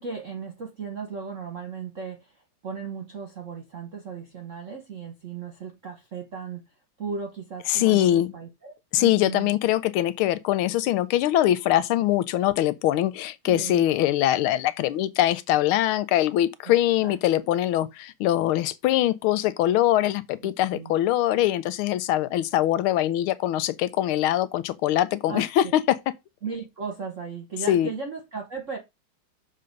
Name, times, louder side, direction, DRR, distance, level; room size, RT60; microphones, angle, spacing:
voice 1, 0.0-9.5 13.4-13.8 16.7-16.8 17.0-17.1 20.4-20.9 25.3-25.7 26.4-28.8, right 5 dB, 45° right, 1.2 m, -36 dB
voice 2, 7.7-8.3 8.9-26.1 27.7-27.9, left 13 dB, 85° left, 1.5 m, -23 dB
6.7 x 3.8 x 5.2 m
omnidirectional pair, 2.3 m